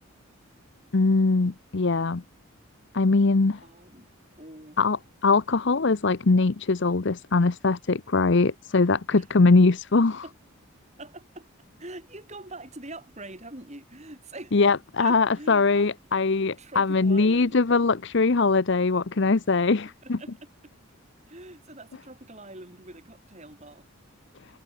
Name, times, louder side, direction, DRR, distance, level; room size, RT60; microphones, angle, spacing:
voice 1, 0.9-2.2 2.9-3.6 4.8-10.2 14.5-20.2, left 3 dB, 55° left, 0.7 m, -22 dB
voice 2, 3.6-4.1 4.4-4.8 9.2-9.3 10.2-10.3 11.0-11.5 11.8-14.6 15.0-15.9 16.6-17.6 20.0-20.7 21.3-23.9, right 2 dB, 30° right, 5.2 m, -44 dB
head